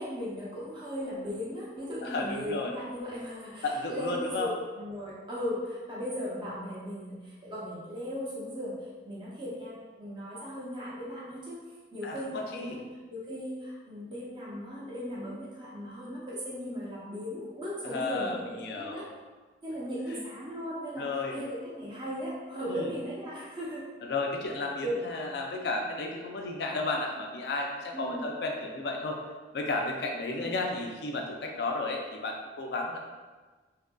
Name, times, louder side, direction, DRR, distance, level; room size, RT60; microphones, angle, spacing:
voice 1, 0.0-8.8 9.0-11.6 11.9-12.8 13.1-19.1 19.6-23.9 24.8-25.0 27.9-28.2 30.3-30.6, equal, 25° right, -8 dB, 0.6 m, -37 dB
voice 2, 2.0-2.7 3.6-4.5 12.0-12.8 17.8-19.0 20.1-20.2 21.0-21.4 22.7-22.9 24.0-29.2 29.5-33.0, left 3 dB, 65° left, 1 dB, 0.4 m, -33 dB
2.6 x 2.4 x 2.2 m, 1.3 s
head